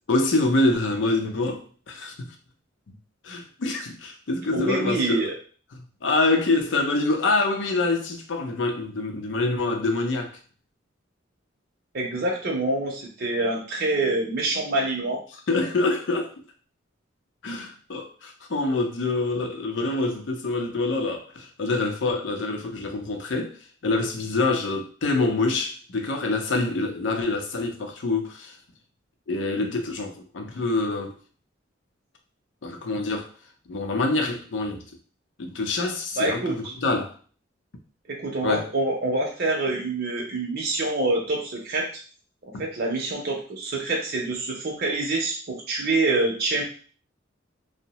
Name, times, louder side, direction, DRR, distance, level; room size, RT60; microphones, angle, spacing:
voice 1, 0.1-2.3 3.2-5.2 5.7-10.3 15.5-16.3 17.4-23.5 23.8-28.5 29.3-31.2 32.6-33.3 33.7-34.8 35.4-37.1 38.4-38.6 42.5-42.6, left 2 dB, 65° left, 0.5 m, -26 dB
voice 2, 4.5-5.3 11.9-15.2 36.2-36.7 38.1-41.9 42.5-46.6, right 2 dB, 50° right, 0.6 m, -26 dB
2.7 x 2.0 x 2.9 m
head